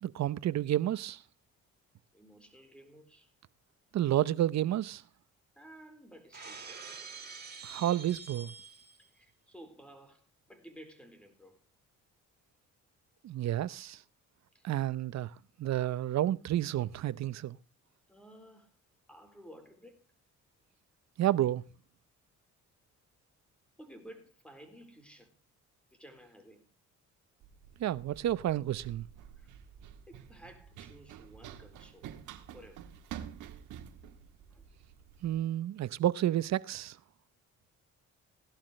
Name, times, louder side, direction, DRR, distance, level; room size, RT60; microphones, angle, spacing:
voice 1, 0.0-1.2 3.9-5.0 7.6-8.5 13.2-14.0 14.6-17.6 21.2-21.6 27.8-29.1 35.2-37.0, right 12 dB, 60° right, 0.7 m, -30 dB
voice 2, 2.1-3.3 5.6-7.1 9.0-11.6 14.5-15.1 18.1-18.8 19.1-20.1 23.8-25.4 25.9-26.7 29.4-29.5 30.1-32.2 32.5-32.8 34.5-34.6, equal, 5° left, 4.2 m, -54 dB
Shatter, 6.3-9.1, right 5 dB, 35° right, 7.5 m, -46 dB
Run, 27.4-35.4, right 9 dB, 85° right, 1.6 m, -49 dB
17.0 x 11.5 x 3.2 m
cardioid pair, 90°, 30 cm